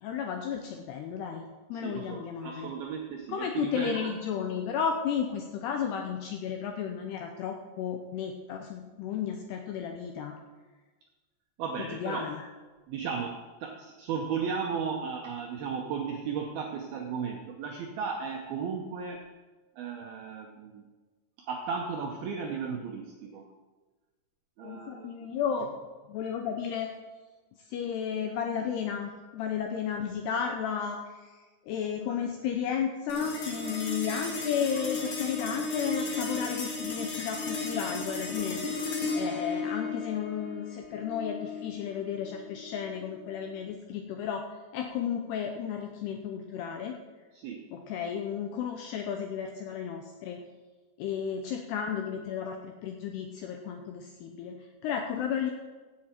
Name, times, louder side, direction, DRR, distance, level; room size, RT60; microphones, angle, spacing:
voice 1, 0.0-2.7 3.3-10.4 11.8-12.5 24.6-25.7 26.1-26.9 27.6-38.6 39.1-44.4 44.7-47.0 47.7-50.4 51.0-55.5, left 7 dB, 80° left, 4 dB, 2.4 m, -33 dB
voice 2, 1.7-4.1 11.6-12.3 12.9-19.2 19.8-20.9 21.4-23.5 24.6-25.3 34.7-34.9 47.3-47.6, right 6 dB, 80° right, 2 dB, 2.2 m, -35 dB
sound 1, 33.1-43.7, left 3 dB, 65° left, 1.3 m, -35 dB
16.0 x 7.8 x 4.4 m, 1.3 s
omnidirectional pair, 5.6 m